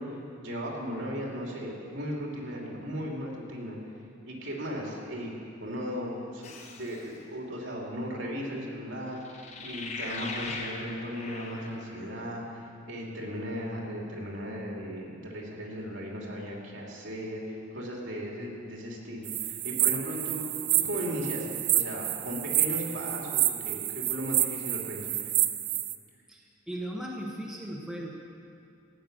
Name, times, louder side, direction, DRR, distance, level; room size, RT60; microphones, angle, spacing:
voice 1, 0.0-3.8 4.2-5.3 5.6-25.1, equal, 70° right, -2 dB, 2.8 m, -36 dB
sound 1, 6.4-7.1 9.2-12.1, left 3 dB, 35° left, 1.1 m, -40 dB
sound 2, 19.3-26.0, right 14 dB, 55° right, 0.5 m, -29 dB
voice 2, 26.3-28.1, right 1 dB, ahead, -3 dB, 1.2 m, -37 dB
14.5 x 9.7 x 6.6 m, 2.4 s
head